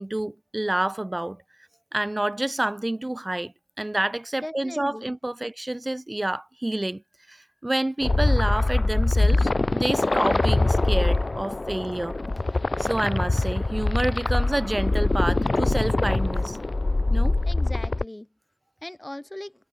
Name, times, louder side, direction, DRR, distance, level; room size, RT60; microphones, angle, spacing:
voice 1, 0.0-1.4 1.9-7.0 7.3-7.4 7.6-12.2 12.8-16.6 17.1-17.4, right 1 dB, 30° right, 0.9 m, -28 dB
voice 2, 4.4-5.1 17.5-18.3 18.8-19.5, left 1 dB, 20° left, 1.0 m, -38 dB
sound 1, 8.0-18.0, left 2 dB, 50° left, 0.6 m, -23 dB
cardioid pair, 40°, 0 cm